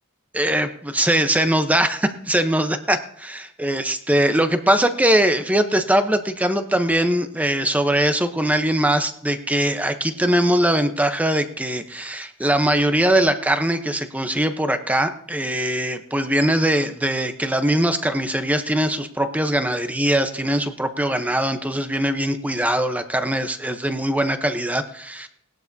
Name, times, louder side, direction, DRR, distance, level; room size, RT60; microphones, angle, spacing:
voice 1, 0.3-25.3, right 1 dB, 5° right, 8 dB, 0.8 m, -21 dB
19.0 x 11.5 x 2.8 m, 0.70 s
head